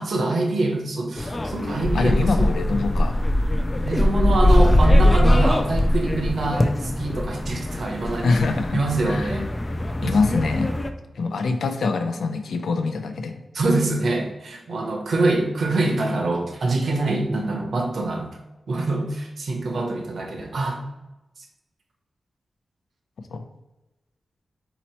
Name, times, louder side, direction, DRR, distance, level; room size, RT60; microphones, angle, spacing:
voice 1, 0.0-2.8 3.8-8.5 8.7-9.5 10.0-10.2 13.5-18.3 18.7-20.8, right 2 dB, 60° right, 2 dB, 0.8 m, -25 dB
sound 1, 1.2-10.9, left 1 dB, 20° left, 0.3 m, -21 dB
voice 2, 1.9-3.1 8.2-8.8 9.1-9.2 10.0-10.7 11.2-13.4 23.3-23.4, left 4 dB, 85° left, 6 dB, 0.5 m, -24 dB
4.1 x 2.9 x 4.3 m, 0.99 s
wide cardioid pair, 170°, 0 cm